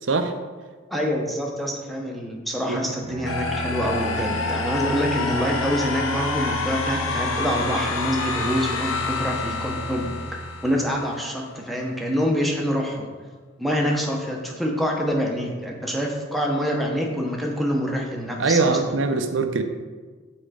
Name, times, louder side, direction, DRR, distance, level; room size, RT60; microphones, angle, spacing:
voice 1, 0.9-10.1 10.6-13.1 13.6-18.8, equal, ahead, -1 dB, 0.9 m, -26 dB
Bowed string instrument, 3.0-11.0, right 1 dB, 30° right, 0.7 m, -34 dB
sound 1, 3.2-11.2, left 3 dB, 85° left, 0.8 m, -28 dB
voice 2, 18.4-19.6, right 4 dB, 70° right, 7 dB, 0.6 m, -22 dB
7.1 x 4.3 x 5.0 m, 1.4 s
head